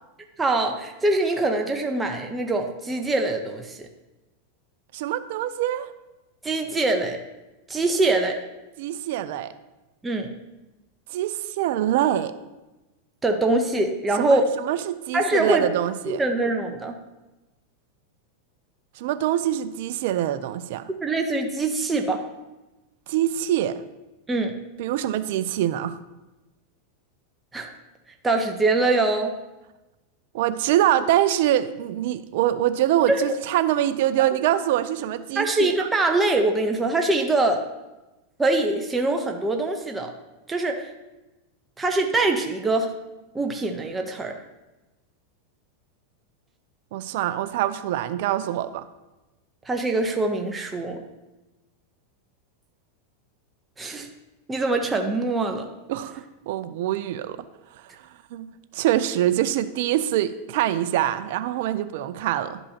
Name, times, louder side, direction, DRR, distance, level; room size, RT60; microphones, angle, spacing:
voice 1, 0.4-3.9 6.4-7.2 7.7-8.4 10.0-10.3 13.2-14.5 15.1-15.7 16.1-16.9 21.0-22.2 24.3-24.5 27.5-27.7 28.2-29.3 33.1-33.3 35.4-37.6 38.4-40.1 40.5-40.9 41.8-42.9 43.3-44.4 49.7-51.0 53.8-54.1 54.5-55.7, right 2 dB, 15° right, 3 dB, 0.8 m, -23 dB
voice 2, 4.9-5.9 8.8-9.5 11.1-12.3 14.2-16.2 19.0-20.9 23.1-23.8 24.8-26.0 30.3-35.9 46.9-48.9 55.9-57.4 58.3-58.5 58.7-62.6, right 12 dB, 65° right, 12 dB, 0.4 m, -24 dB
11.5 x 5.4 x 2.8 m, 1.1 s
hypercardioid pair, 115°, 0 cm